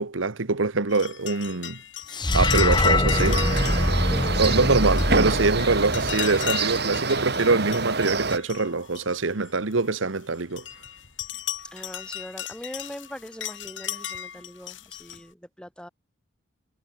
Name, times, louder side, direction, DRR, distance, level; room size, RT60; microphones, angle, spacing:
voice 1, 0.0-1.8 2.3-3.4 4.4-10.6, right 3 dB, 85° right, 1.2 m, -24 dB
sound 1, 0.9-9.7 10.2-15.2, left 10 dB, 75° left, 3.8 m, -36 dB
sound 2, 2.1-6.5, left 1 dB, 25° left, 3.1 m, -23 dB
sound 3, 3.1-8.4, right 4 dB, 55° right, 3.9 m, -27 dB
voice 2, 4.1-4.8 11.7-15.9, equal, 5° left, 5.6 m, -41 dB
head